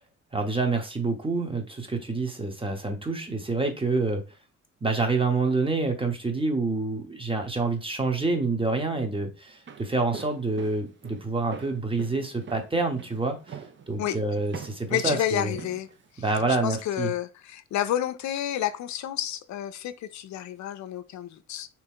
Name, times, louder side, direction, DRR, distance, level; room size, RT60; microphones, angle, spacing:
voice 1, 0.3-4.2 4.8-13.6 13.9-15.5 16.2-17.1, right 3 dB, 15° right, 1.0 m, -27 dB
Walk footsteps, 9.5-16.6, right 6 dB, 40° right, 0.7 m, -43 dB
voice 2, 14.0-14.4 14.9-15.9 16.1-16.2 16.6-21.7, left 11 dB, 70° left, 0.5 m, -30 dB
3.5 x 3.0 x 3.6 m
cardioid pair, 90°, 30 cm